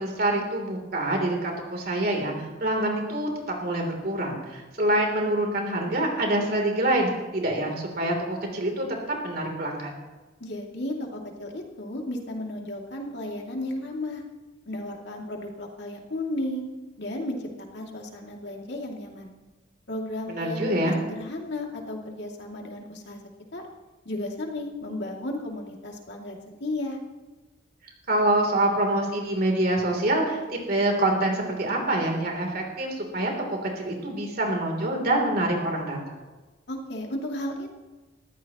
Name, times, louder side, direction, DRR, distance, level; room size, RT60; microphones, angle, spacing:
voice 1, 0.0-8.8 9.2-9.9 20.3-21.0 28.1-36.0, right 1 dB, 50° right, 1 dB, 3.4 m, -26 dB
voice 2, 10.4-14.2 14.7-16.6 17.0-17.4 17.7-19.3 19.9-23.2 23.5-23.6 24.0-27.0 36.7-37.7, left 1 dB, 60° left, 0 dB, 2.6 m, -34 dB
20.0 x 15.0 x 3.1 m, 1.2 s
head